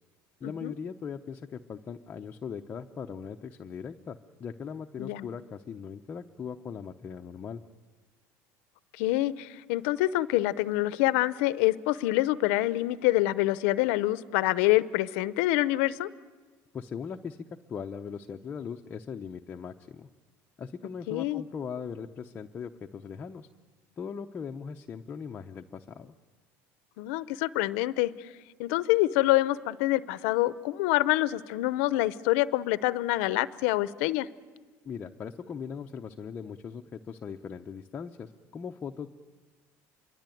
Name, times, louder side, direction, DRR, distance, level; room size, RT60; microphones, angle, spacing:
voice 1, 0.4-7.6 16.7-17.4 17.7-20.1 20.6-23.5 24.0-26.1 34.8-39.1, left 6 dB, 25° left, 3 dB, 0.7 m, -39 dB
voice 2, 9.0-16.1 21.1-21.4 27.0-28.3 28.6-34.3, left 17 dB, 85° left, 15 dB, 0.8 m, -26 dB
26.5 x 23.0 x 9.2 m, 1.4 s
cardioid pair, 160°, 7 cm